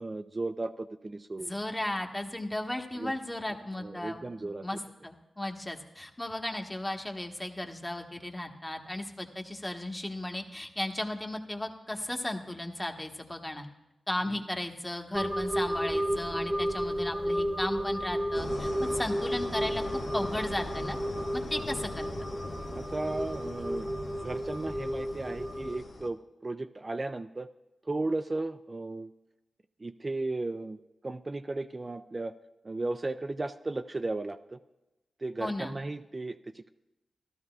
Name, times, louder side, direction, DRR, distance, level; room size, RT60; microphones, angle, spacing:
voice 1, 0.0-1.5 2.9-3.2 3.8-4.7 22.7-23.9 24.2-27.5 27.8-29.1 29.8-32.3 32.6-34.6 35.2-36.7, right 2 dB, 40° right, 8 dB, 0.4 m, -35 dB
voice 2, 1.4-4.8 5.0-13.7 14.1-19.8 20.1-21.0 21.3-22.1 35.4-35.7, left 1 dB, 20° left, 3 dB, 1.3 m, -35 dB
sound 1, 15.1-25.8, equal, 10° right, 1.1 m, -32 dB
sound 2, 18.3-26.1, left 2 dB, 75° left, 1.2 m, -41 dB
15.0 x 12.5 x 2.4 m, 0.99 s
cardioid pair, 45°, 0 cm